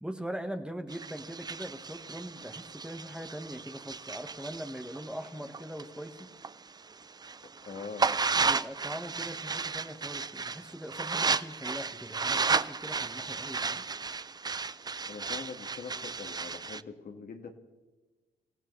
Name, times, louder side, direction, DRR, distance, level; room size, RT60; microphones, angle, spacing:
voice 1, 0.0-6.3 8.4-13.8, equal, 5° right, 6 dB, 1.3 m, -41 dB
sound 1, 0.9-6.5 6.9-16.8, right 4 dB, 25° right, 0.4 m, -33 dB
voice 2, 7.7-8.1 15.1-17.5, left 5 dB, 55° left, 5 dB, 1.7 m, -43 dB
27.5 x 15.5 x 3.2 m, 1.2 s
cardioid pair, 75°, 18 cm